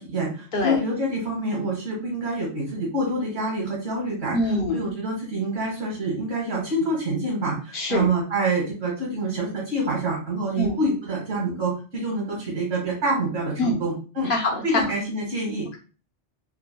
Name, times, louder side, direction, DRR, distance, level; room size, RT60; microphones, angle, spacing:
voice 1, 0.0-14.3 14.6-15.7, right 2 dB, 80° right, -2 dB, 2.0 m, -27 dB
voice 2, 4.3-4.8 7.7-8.1 10.6-10.7 13.6-13.8 14.3-14.8, left 2 dB, 50° left, 1 dB, 1.0 m, -24 dB
5.7 x 2.1 x 2.2 m, 0.35 s
omnidirectional pair, 1.2 m